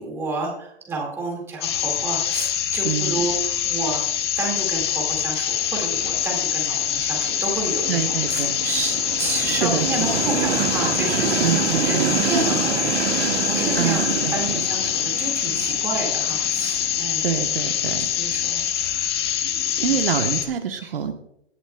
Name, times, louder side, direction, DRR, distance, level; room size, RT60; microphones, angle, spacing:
voice 1, 0.0-4.0 4.4-17.4 18.0-19.1 19.9-20.0 20.8-20.9, right 3 dB, 5° right, -1 dB, 1.9 m, -30 dB
sound 1, 1.6-20.4, left 10 dB, 25° left, 0.8 m, -24 dB
voice 2, 2.8-3.2 7.9-8.5 9.5-9.9 11.4-12.2 13.7-14.6 17.2-18.1 19.4-21.1, right 8 dB, 55° right, 6 dB, 1.1 m, -26 dB
Train, 5.5-18.5, right 7 dB, 85° right, 1.7 m, -29 dB
17.0 x 11.0 x 2.2 m, 0.75 s
hypercardioid pair, 175°, 33 cm